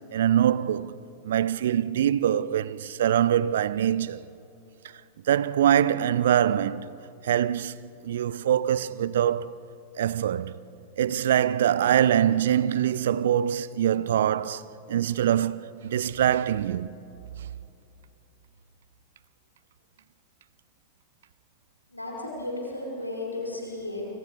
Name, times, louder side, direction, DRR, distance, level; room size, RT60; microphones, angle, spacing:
voice 1, 0.1-0.9 1.2-4.2 5.3-6.9 7.2-7.8 8.0-9.5 10.0-10.5 11.0-14.6 14.9-16.9, right 10 dB, 60° right, 0.6 m, -23 dB
voice 2, 21.9-24.0, left 2 dB, 85° left, 5.1 m, -34 dB
29.0 x 25.5 x 4.7 m
figure-of-eight pair, 90°, 0 cm